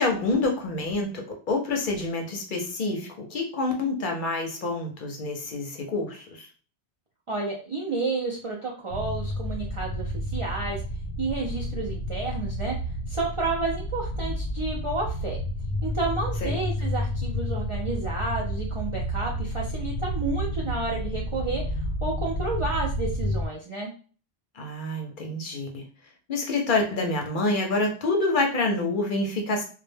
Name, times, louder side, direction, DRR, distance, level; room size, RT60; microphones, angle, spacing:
voice 1, 0.0-6.5 16.4-16.6 24.5-25.8 26.3-29.6, left 2 dB, 60° left, 2 dB, 0.7 m, -27 dB
voice 2, 7.3-10.8 11.2-12.7 13.1-15.4 15.8-23.9, right 3 dB, 50° right, -2 dB, 0.3 m, -31 dB
sound 1, 8.9-23.5, equal, 80° right, 0.8 m, -30 dB
2.1 x 2.1 x 3.1 m, 0.39 s
omnidirectional pair, 1.1 m